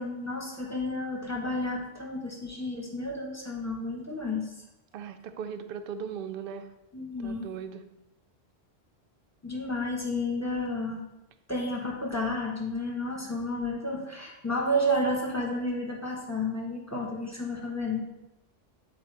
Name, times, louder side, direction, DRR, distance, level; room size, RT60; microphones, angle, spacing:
voice 1, 0.0-4.5 6.9-7.5 9.4-11.0 11.5-18.0, left 1 dB, 15° left, -1 dB, 0.9 m, -31 dB
voice 2, 4.9-6.7 7.2-7.8, right 7 dB, 65° right, 9 dB, 0.7 m, -38 dB
8.9 x 4.0 x 3.3 m, 0.93 s
omnidirectional pair, 1.1 m